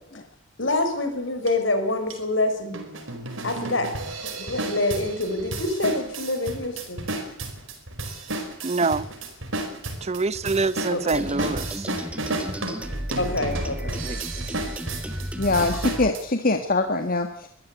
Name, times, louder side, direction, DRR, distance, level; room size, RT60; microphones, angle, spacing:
voice 1, 0.6-2.8 3.4-3.9 4.2-7.0 10.9-11.2 13.2-14.0, left 2 dB, 70° left, 5.8 m, -26 dB
sound 1, 1.5-1.6 2.1-2.2 2.7-16.2, right 2 dB, 90° right, 5.0 m, -33 dB
voice 2, 8.6-9.1 10.0-11.9 14.0-14.2, right 3 dB, 35° right, 0.7 m, -25 dB
sound 2, 11.1-16.1, equal, 5° right, 1.7 m, -33 dB
voice 3, 15.4-17.5, left 2 dB, 45° left, 1.7 m, -23 dB
22.5 x 14.5 x 8.5 m
head